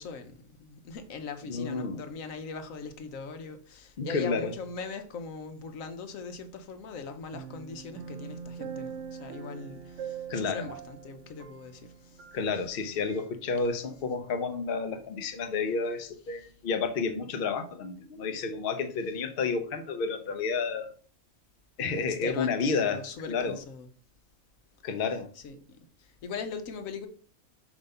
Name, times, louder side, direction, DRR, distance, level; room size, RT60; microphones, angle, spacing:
voice 1, 0.0-12.2 12.5-13.2 13.8-13.9 19.0-19.1 22.0-23.9 25.0-25.6 26.0-27.1, left 4 dB, 80° left, 1.2 m, -41 dB
voice 2, 1.5-2.0 4.0-4.5 10.3-10.7 12.3-20.9 21.8-23.0 23.3-23.6 24.8-25.3, left 4 dB, 50° left, 0.8 m, -30 dB
sound 1, 7.3-12.8 13.1-13.3, right 7 dB, 70° right, 0.9 m, -42 dB
7.2 x 3.0 x 5.4 m
omnidirectional pair, 1.4 m